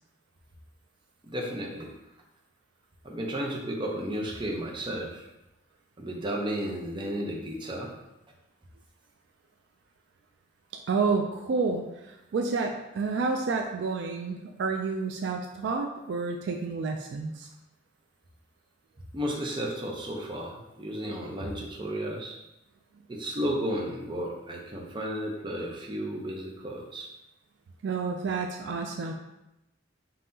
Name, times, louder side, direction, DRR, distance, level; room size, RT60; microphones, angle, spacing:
voice 1, 1.2-1.9 3.0-5.3 6.0-7.9 19.1-22.4 23.1-27.1, equal, 25° right, -1 dB, 0.6 m, -33 dB
voice 2, 10.9-17.5 27.8-29.1, right 4 dB, 60° right, 3 dB, 0.3 m, -30 dB
5.5 x 2.8 x 2.7 m, 0.92 s
head